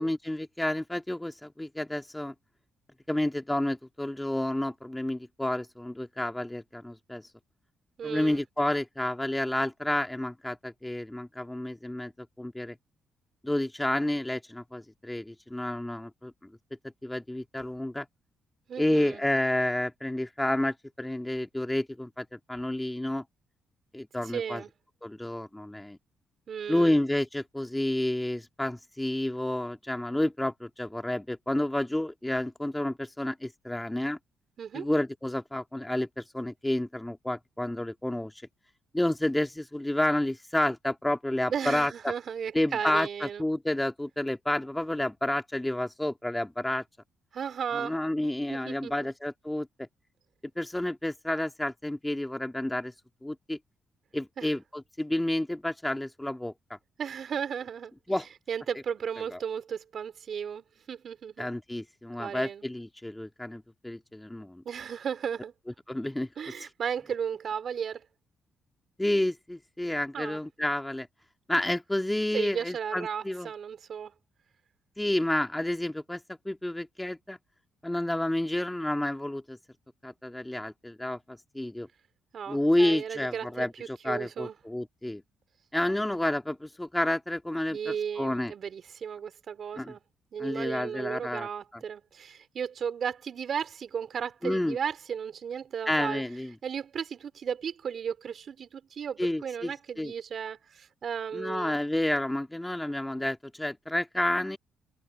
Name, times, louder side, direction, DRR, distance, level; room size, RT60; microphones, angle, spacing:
voice 1, 0.0-2.3 3.1-7.2 8.0-12.8 13.4-16.3 17.0-18.1 18.8-23.2 23.9-24.6 25.0-26.0 26.7-34.2 34.7-38.3 38.9-41.9 42.5-46.8 47.7-49.9 50.6-52.9 53.2-53.6 54.1-56.5 58.1-58.3 59.3-59.4 61.4-64.6 65.9-66.3 69.0-71.1 71.5-73.5 75.0-76.2 76.5-77.4 77.8-79.6 80.0-81.9 82.5-85.2 85.7-88.5 89.8-89.9 90.4-91.5 94.4-94.8 95.9-96.5 99.2-99.7 100.0-100.1 101.3-104.6, left 1 dB, 10° left, 1.8 m, -30 dB
voice 2, 8.0-8.4 18.7-19.2 24.2-24.7 26.5-27.0 34.6-34.9 41.5-43.4 47.3-48.0 48.5-49.1 54.4-54.5 57.0-57.9 58.5-61.5 62.2-62.6 64.6-65.5 66.4-68.0 70.1-70.4 72.3-74.1 82.3-84.5 87.7-90.0 90.3-96.2 96.6-101.8, right 7 dB, 55° right, 4.3 m, -35 dB
cardioid pair, 90°, 0 cm